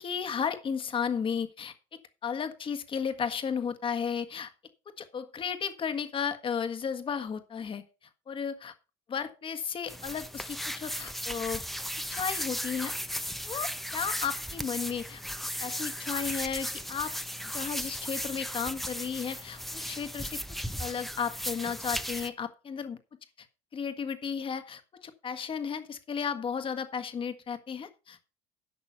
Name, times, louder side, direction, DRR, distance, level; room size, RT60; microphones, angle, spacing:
voice 1, 0.0-4.5 5.0-7.8 8.3-8.7 9.1-11.6 12.1-12.9 13.5-15.2 15.6-17.1 17.5-20.4 20.8-23.0 23.4-23.5 23.7-28.3, left 6 dB, 35° left, 9 dB, 1.6 m, -34 dB
sound 1, 9.9-22.3, equal, ahead, 0.9 m, -36 dB
11.5 x 6.1 x 5.6 m, 0.33 s
supercardioid pair, 100°, 15 cm